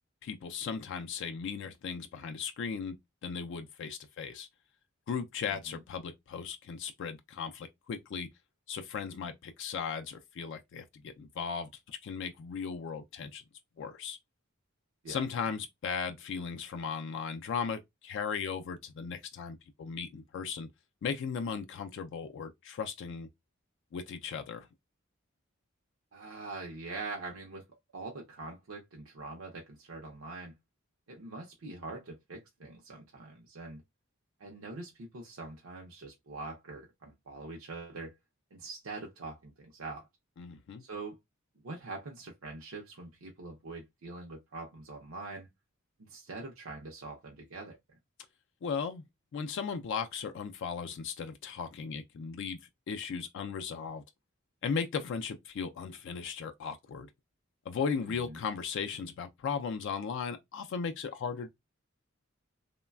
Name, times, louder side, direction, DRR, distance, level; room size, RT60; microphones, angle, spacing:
voice 1, 0.2-3.0 3.2-4.5 5.1-8.3 8.7-13.4 13.8-14.2 15.1-20.7 21.0-23.3 23.9-24.7 40.4-40.8 48.6-49.0 49.3-52.6 52.9-54.0 54.6-57.1 57.7-61.5, left 6 dB, 60° left, 0.3 m, -37 dB
voice 2, 26.1-27.6 27.9-30.5 31.1-33.8 34.4-38.1 38.5-40.1 40.8-41.2 41.6-45.5 46.0-47.8 58.0-58.4, right 3 dB, 75° right, 0.6 m, -44 dB
3.1 x 2.1 x 2.2 m
head